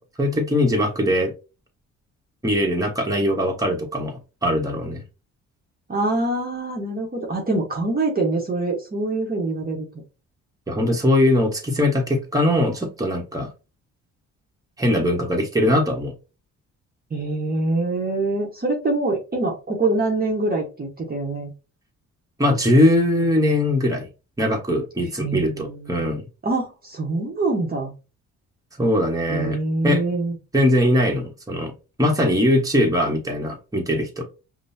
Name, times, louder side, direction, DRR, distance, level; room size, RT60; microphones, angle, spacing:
voice 1, 0.2-1.3 2.4-5.0 10.7-13.5 14.8-16.1 22.4-24.1 24.4-26.2 28.8-29.6 29.8-30.0 30.5-31.7 32.0-34.2, left 1 dB, 10° right, 1 dB, 1.4 m, -21 dB
voice 2, 5.9-9.8 17.1-21.5 25.2-26.1 26.4-27.9 29.3-30.4, right 2 dB, 30° right, -1 dB, 1.2 m, -24 dB
5.3 x 2.4 x 2.8 m, 0.30 s
cardioid pair, 90°, 30 cm